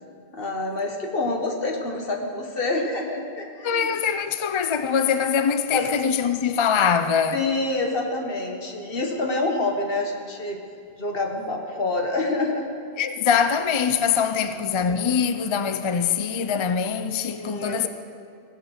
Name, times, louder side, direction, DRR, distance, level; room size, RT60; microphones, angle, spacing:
voice 1, 0.3-3.9 5.7-5.9 7.3-10.6 11.0-12.7 17.4-17.9, left 2 dB, 60° left, 1.7 m, -27 dB
voice 2, 3.6-7.4 13.0-17.9, left 7 dB, 40° left, 0.4 m, -23 dB
16.5 x 7.8 x 6.4 m
omnidirectional pair, 1.1 m